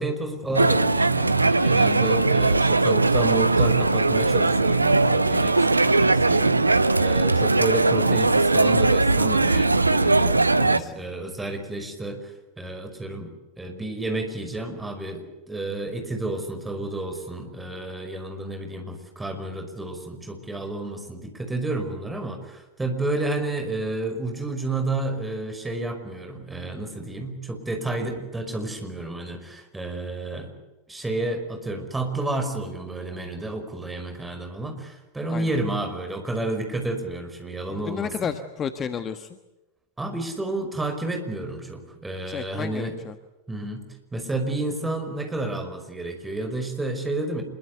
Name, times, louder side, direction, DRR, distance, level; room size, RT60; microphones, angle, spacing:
voice 1, 0.0-30.5 30.9-38.1 40.0-43.0 43.5-43.9 44.1-47.4, right 2 dB, 10° right, 5 dB, 5.3 m, -31 dB
sound 1, 0.5-10.8, right 3 dB, 80° right, 0.8 m, -19 dB
voice 2, 10.5-10.9 35.3-35.5 37.7-39.3 42.3-43.1, left 7 dB, 25° left, 10 dB, 1.3 m, -32 dB
26.5 x 22.5 x 8.2 m, 1.1 s
figure-of-eight pair, 90°, 0 cm